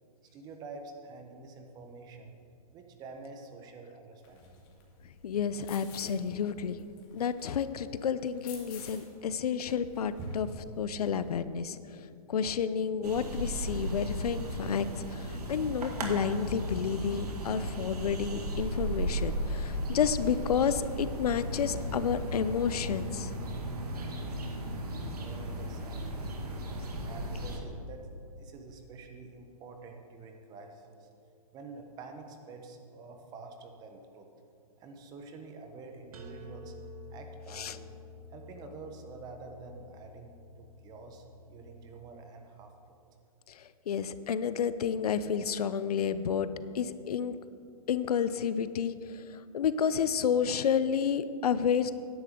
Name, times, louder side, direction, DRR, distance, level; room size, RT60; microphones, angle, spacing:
voice 1, 0.3-2.3 2.7-4.6 10.2-10.6 25.1-26.6 27.0-28.1 28.4-31.1 31.5-34.3 34.8-36.7 37.1-38.0 38.3-40.3 40.6-43.0, right 3 dB, 20° right, 5 dB, 1.0 m, -47 dB
sound 1, 4.2-11.4, left 6 dB, 35° left, 2.1 m, -53 dB
voice 2, 5.2-6.8 7.1-10.5 10.8-11.8 12.3-23.3 37.5-37.8 43.5-46.5 46.7-47.4 47.9-51.9, left 7 dB, 80° left, 13 dB, 0.6 m, -30 dB
sound 2, 13.0-27.6, right 1 dB, 85° right, 2.0 m, -35 dB
sound 3, 36.1-41.9, left 2 dB, 70° right, 1.5 m, -50 dB
14.0 x 10.5 x 3.7 m, 2.5 s
hypercardioid pair, 150°, 19 cm